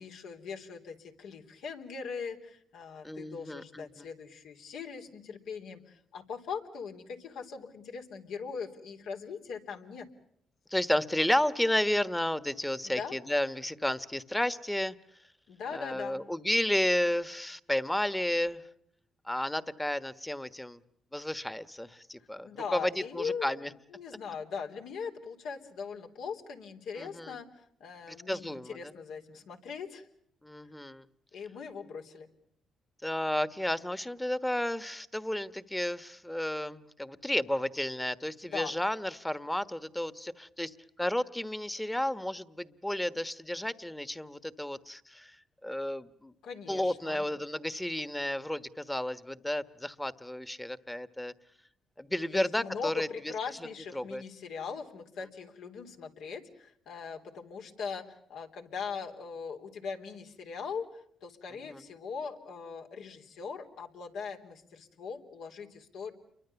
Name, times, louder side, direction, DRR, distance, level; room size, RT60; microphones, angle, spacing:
voice 1, 0.0-10.1 12.8-13.1 15.5-16.2 22.4-23.6 23.9-30.1 31.3-32.3 38.5-38.7 46.4-47.3 52.3-60.9 61.2-66.1, left 6 dB, 80° left, 3 dB, 3.6 m, -40 dB
voice 2, 3.0-4.0 10.7-14.9 15.7-18.6 19.3-20.8 21.1-23.7 27.0-27.4 28.1-28.8 30.4-31.0 33.0-45.3 45.6-46.3 46.7-51.3 52.0-53.1 53.9-54.2 61.7-61.8, left 1 dB, 5° left, 13 dB, 1.3 m, -32 dB
29.5 x 24.0 x 7.0 m, 0.69 s
cardioid pair, 90°, 0 cm